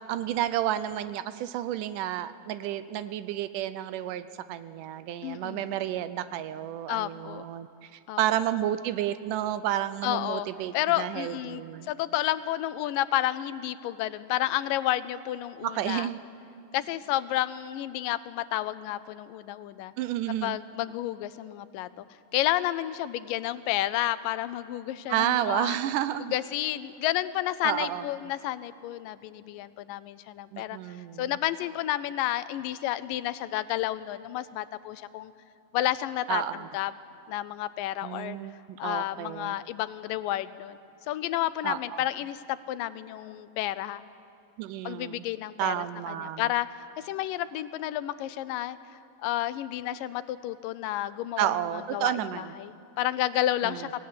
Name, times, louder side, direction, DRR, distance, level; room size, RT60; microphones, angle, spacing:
voice 1, 0.1-7.7 8.2-11.9 15.6-16.2 20.0-20.6 25.1-26.3 27.6-28.0 30.5-31.4 36.3-36.7 38.0-39.6 41.6-42.0 44.6-45.2 45.6-46.5 51.4-52.6 53.6-53.9, right 12 dB, 80° right, 13 dB, 2.1 m, -31 dB
voice 2, 5.2-5.8 6.9-7.5 8.1-8.2 10.0-10.5 10.7-16.1 16.7-19.9 20.4-22.1 22.3-25.8 26.3-35.3 35.7-36.4 36.7-36.9 37.3-38.4 38.8-40.8 41.1-44.0 44.8-46.7 47.0-48.8 49.2-54.0, left 14 dB, 85° left, 14 dB, 2.3 m, -31 dB
24.0 x 17.5 x 9.5 m, 2.5 s
omnidirectional pair, 3.9 m